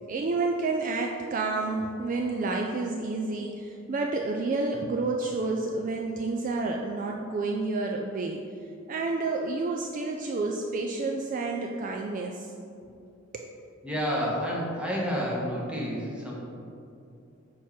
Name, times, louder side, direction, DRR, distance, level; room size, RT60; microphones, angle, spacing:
voice 1, 0.1-8.4 8.9-12.5 13.3-13.5, right 3 dB, 40° right, 1 dB, 0.3 m, -29 dB
voice 2, 13.8-16.3, equal, 5° right, -4 dB, 1.0 m, -29 dB
4.6 x 4.5 x 5.7 m, 2.6 s
head